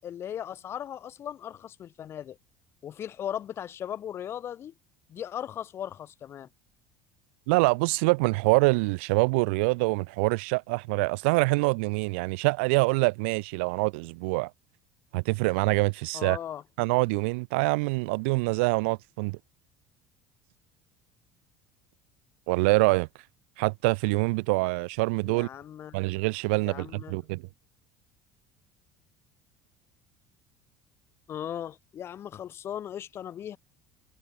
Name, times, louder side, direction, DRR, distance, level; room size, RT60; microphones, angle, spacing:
voice 1, 0.0-2.4 2.8-4.7 5.1-6.5 16.1-16.6 25.2-26.0 26.6-27.2 31.3-33.6, left 10 dB, 40° left, 6.8 m, -37 dB
voice 2, 7.5-14.5 15.1-16.4 16.8-19.4 22.5-23.1 23.6-25.5 25.9-27.4, right 28 dB, 85° right, 4.5 m, -25 dB
cardioid pair, 120°, 6 cm